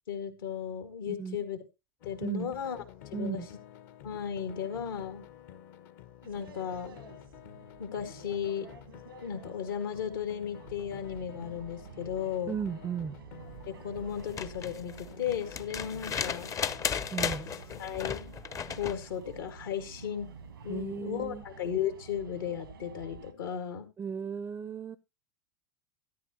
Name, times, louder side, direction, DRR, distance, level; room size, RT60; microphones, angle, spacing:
voice 1, 0.1-1.6 2.1-2.8 3.1-3.4 4.0-5.2 6.2-7.0 7.8-8.7 9.2-12.6 13.7-16.5 17.8-18.3 18.8-20.3 20.6-23.9, left 8 dB, 80° left, 2.0 m, -35 dB
voice 2, 1.1-1.5 2.2-2.5 3.1-3.5 12.5-13.1 17.1-17.5 20.7-21.4 24.0-25.0, right 7 dB, 20° right, 0.5 m, -35 dB
sound 1, 2.0-17.9, left 11 dB, 60° left, 1.2 m, -51 dB
sound 2, 6.2-23.3, right 6 dB, 85° right, 1.3 m, -50 dB
sound 3, 14.2-19.0 20.7-20.8, left 7 dB, 30° left, 0.7 m, -35 dB
13.5 x 10.0 x 2.9 m
hypercardioid pair, 90°, 11 cm